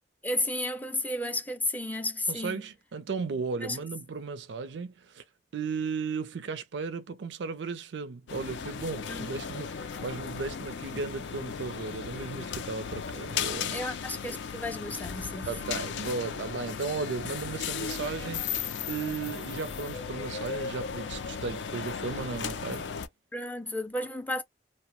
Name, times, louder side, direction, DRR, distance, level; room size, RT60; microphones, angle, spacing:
voice 1, 0.2-2.6 3.6-3.8 9.1-9.3 13.7-15.8 23.3-24.4, left 1 dB, 10° left, 0.4 m, -33 dB
voice 2, 2.3-5.2 5.5-13.8 15.5-22.9, right 4 dB, 85° right, 0.4 m, -35 dB
sound 1, 8.3-23.1, left 6 dB, 90° left, 0.4 m, -36 dB
2.7 x 2.1 x 2.9 m
head